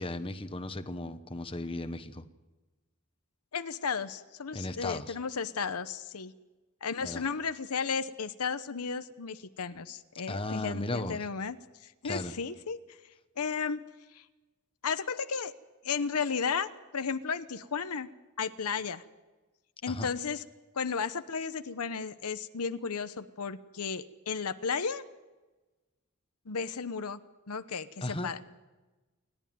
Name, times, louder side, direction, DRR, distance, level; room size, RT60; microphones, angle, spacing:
voice 1, 0.0-2.2 4.5-5.2 7.0-7.2 10.3-11.2 12.0-12.3 19.9-20.1 28.0-28.3, left 2 dB, 25° left, 9 dB, 1.2 m, -36 dB
voice 2, 3.5-6.3 6.8-11.6 11.8-13.0 13.4-13.8 14.1-14.2 14.8-15.5 15.8-16.7 16.9-18.1 18.4-19.0 19.8-20.4 20.7-25.0 26.5-27.2 27.5-28.4, left 5 dB, 90° left, 11 dB, 0.9 m, -34 dB
28.5 x 12.0 x 9.2 m, 1.2 s
head